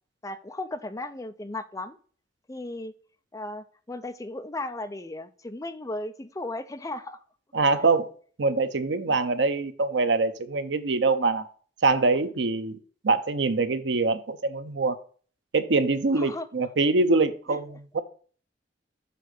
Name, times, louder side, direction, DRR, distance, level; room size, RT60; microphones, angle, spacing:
voice 1, 0.2-2.0 2.5-2.9 3.3-7.2 9.1-9.2 16.1-16.5 17.5-17.6, left 2 dB, 20° left, 9 dB, 0.5 m, -36 dB
voice 2, 7.5-8.1 8.4-11.5 11.8-12.8 13.0-15.0 15.5-18.0, right 3 dB, 85° right, 11 dB, 0.7 m, -24 dB
6.9 x 3.8 x 6.4 m, 0.43 s
head